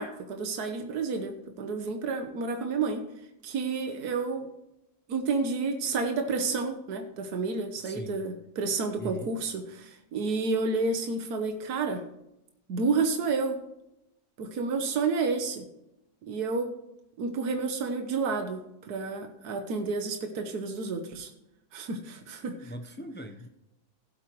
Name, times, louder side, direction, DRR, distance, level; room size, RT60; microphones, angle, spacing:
voice 1, 0.0-3.0 3.4-4.5 5.1-12.0 12.7-13.6 14.4-15.6 16.2-16.7 17.2-21.3 21.7-22.7, right 4 dB, 80° right, 5 dB, 1.6 m, -30 dB
voice 2, 7.8-8.2 9.0-9.3 22.6-23.5, right 1 dB, 15° left, 6 dB, 0.4 m, -40 dB
16.5 x 7.8 x 3.1 m, 0.88 s
omnidirectional pair, 1.6 m